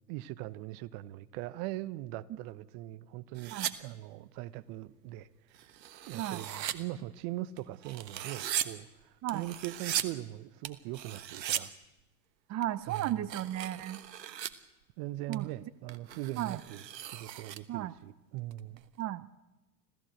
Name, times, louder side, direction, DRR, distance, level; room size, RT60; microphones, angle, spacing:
voice 1, 0.1-5.8 6.1-11.7 12.9-13.3 15.0-18.8, right 15 dB, 55° right, 1.1 m, -41 dB
sound 1, 3.4-3.7 5.5-6.8 7.6-8.7 9.3-10.0 10.6-11.6 12.6-14.5 15.3-15.4 15.9-17.6 18.5-19.0, right 11 dB, 80° right, 1.3 m, -38 dB
voice 2, 12.5-14.0 15.3-15.5 16.4-16.6 17.7-17.9 19.0-19.3, right 13 dB, 35° right, 0.8 m, -34 dB
26.5 x 16.0 x 7.9 m
hypercardioid pair, 80°, 49 cm